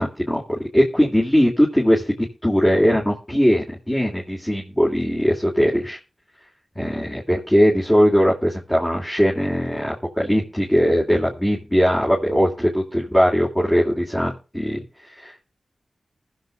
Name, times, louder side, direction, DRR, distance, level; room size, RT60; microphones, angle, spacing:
voice 1, 0.0-6.0 6.7-14.8 15.2-15.5, equal, 15° left, -3 dB, 3.3 m, -20 dB
22.0 x 7.4 x 2.6 m, 0.33 s
cardioid pair, 45°, 0 cm